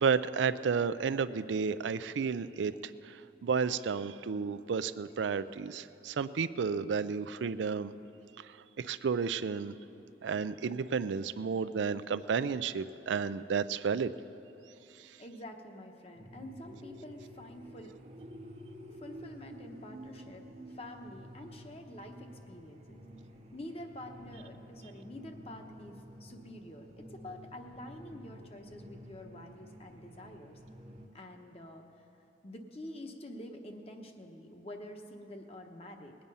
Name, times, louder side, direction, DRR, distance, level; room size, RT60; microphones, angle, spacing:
voice 1, 0.0-7.9 8.4-9.7 10.2-14.1 15.0-15.1, right 5 dB, 90° right, 14 dB, 0.4 m, -32 dB
voice 2, 15.2-17.9 19.0-23.0 23.5-30.6 31.1-32.0 32.4-36.1, left 1 dB, 35° left, 4 dB, 1.0 m, -47 dB
sound 1, 16.2-31.1, equal, 35° right, 0.8 m, -50 dB
20.0 x 8.8 x 5.5 m, 2.8 s
head